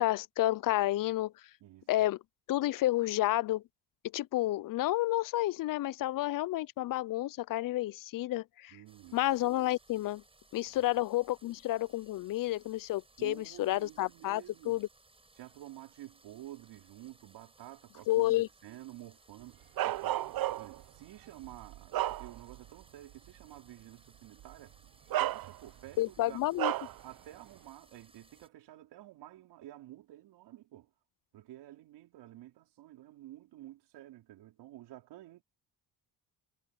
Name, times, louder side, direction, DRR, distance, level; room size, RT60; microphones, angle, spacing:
voice 1, 0.0-1.3 1.9-2.2 2.5-3.6 4.1-8.8 9.1-10.2 10.5-14.9 18.1-18.5 26.0-26.7, left 16 dB, 55° left, 0.5 m, -30 dB
voice 2, 8.7-9.2 10.7-10.9 13.2-14.8 15.4-24.8 25.2-26.5 27.0-30.9 31.3-35.4, right 14 dB, 85° right, 4.3 m, -51 dB
sound 1, 8.9-28.5, right 2 dB, 15° right, 4.7 m, -64 dB
Bark, 19.8-20.8 21.4-22.7 23.1-23.3 24.4-24.5 25.1-25.9 26.6-27.0, right 14 dB, 60° right, 0.7 m, -33 dB
cardioid pair, 115°, 40 cm